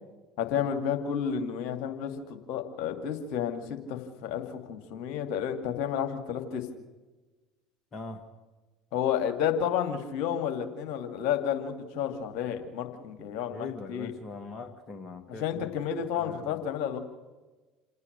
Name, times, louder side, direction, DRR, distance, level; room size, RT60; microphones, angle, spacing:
voice 1, 0.4-6.7 8.9-14.1 15.4-17.0, left 8 dB, 55° left, 5 dB, 2.4 m, -31 dB
voice 2, 7.9-8.2 13.3-15.7 16.2-16.7, left 3 dB, 30° left, 4 dB, 1.8 m, -42 dB
28.0 x 9.6 x 9.7 m, 1.2 s
figure-of-eight pair, 65°, 0 cm